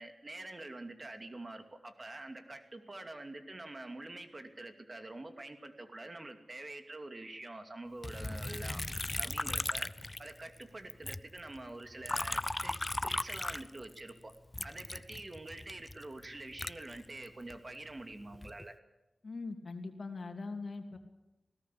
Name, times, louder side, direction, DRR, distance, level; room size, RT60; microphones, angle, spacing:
voice 1, 0.0-8.8 9.2-9.9 10.2-12.8 13.0-14.3 14.6-18.7, right 2 dB, 40° right, 7 dB, 2.6 m, -46 dB
Liquid, 8.0-10.6 10.9-14.1 14.5-17.6 18.1-18.7, left 2 dB, 25° left, 0.7 m, -37 dB
voice 2, 19.2-21.0, left 3 dB, 65° left, 5 dB, 2.8 m, -41 dB
20.5 x 17.5 x 8.6 m, 0.96 s
cardioid pair, 55°, 0 cm